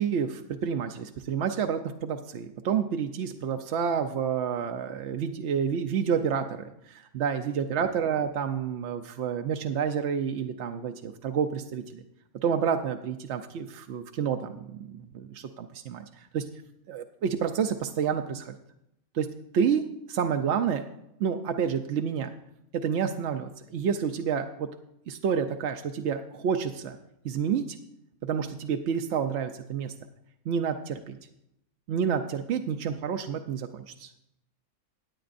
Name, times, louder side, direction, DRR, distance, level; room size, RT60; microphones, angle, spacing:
voice 1, 0.0-12.0 12.4-16.5 16.9-18.5 19.1-19.3 19.5-20.8 21.2-22.3 22.7-24.7 25.1-27.0 27.2-27.6 28.2-29.9 30.5-31.2 31.9-34.1, right 7 dB, 65° right, 5 dB, 0.8 m, -29 dB
16.5 x 9.3 x 2.5 m, 0.80 s
omnidirectional pair, 1.5 m